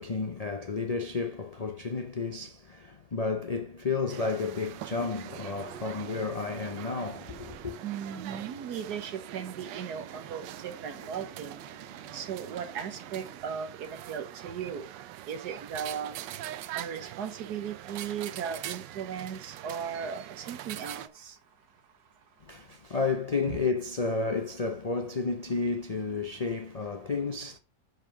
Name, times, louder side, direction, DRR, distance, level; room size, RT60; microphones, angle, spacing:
voice 1, 0.0-7.7 22.4-27.6, left 4 dB, 75° left, 0.3 m, -32 dB
sound 1, 4.1-21.1, right 12 dB, 85° right, 1.3 m, -43 dB
Thunder, 5.3-13.4, right 6 dB, 50° right, 1.0 m, -50 dB
voice 2, 7.8-11.6 12.1-14.9 15.3-16.1 16.7-21.3 23.5-23.6, right 7 dB, 70° right, 1.5 m, -37 dB
5.2 x 4.8 x 5.8 m
omnidirectional pair, 1.9 m